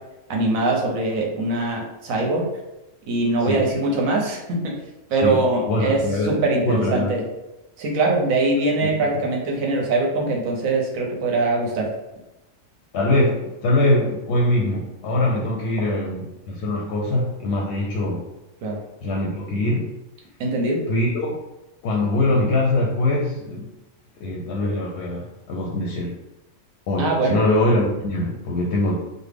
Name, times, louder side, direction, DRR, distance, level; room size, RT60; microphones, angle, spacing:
voice 1, 0.3-2.5 3.1-4.7 5.1-7.2 7.8-11.9 18.6-18.8 20.4-20.8 27.0-27.4, right 2 dB, 85° right, 0 dB, 1.1 m, -22 dB
voice 2, 5.2-6.4 6.6-7.1 8.8-9.1 12.9-18.3 19.0-19.9 20.9-21.4 21.8-23.7 24.2-26.2 26.9-29.0, left 1 dB, 65° left, -2 dB, 0.7 m, -23 dB
3.2 x 2.1 x 3.4 m, 0.97 s
omnidirectional pair, 1.4 m